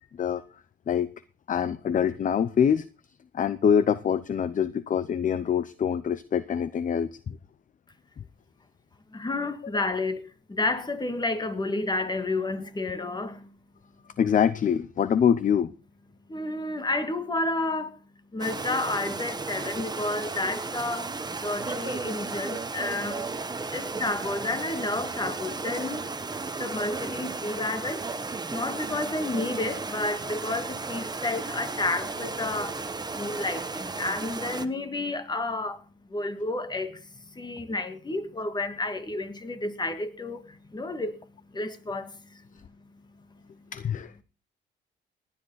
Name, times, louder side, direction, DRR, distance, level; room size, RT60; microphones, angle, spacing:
voice 1, 1.5-2.9 3.3-7.4 14.2-15.7 43.7-44.2, left 8 dB, 40° left, 0.6 m, -25 dB
voice 2, 9.1-13.5 16.3-18.0 18.3-23.3 23.7-26.1 26.6-35.8 36.1-41.2 41.5-42.4, left 2 dB, 20° left, 2.0 m, -31 dB
sound 1, 18.4-34.7, right 3 dB, 20° right, 1.1 m, -34 dB
18.5 x 9.9 x 4.1 m
cardioid pair, 90°, 20 cm